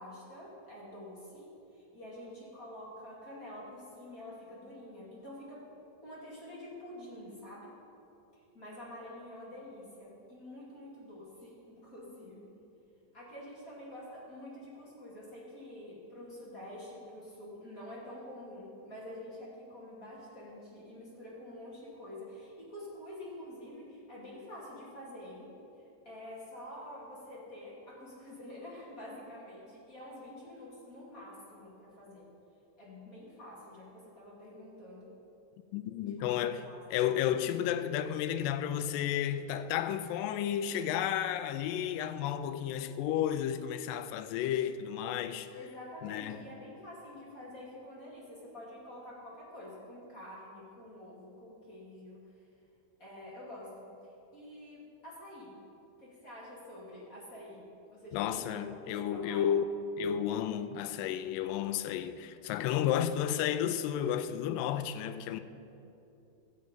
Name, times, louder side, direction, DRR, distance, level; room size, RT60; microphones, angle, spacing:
voice 1, 0.0-5.6 6.0-7.7 8.3-12.5 13.1-32.3 32.8-35.1 36.0-36.8 41.8-42.3 43.3-43.6 45.5-52.2 53.0-55.6 56.0-59.6, left 1 dB, 25° left, 2.3 m, -48 dB
voice 2, 35.7-36.6 36.9-45.6 46.0-46.5 58.1-59.7 60.0-65.4, left 10 dB, 80° left, 2.1 m, -32 dB
15.0 x 7.6 x 5.2 m
omnidirectional pair, 4.2 m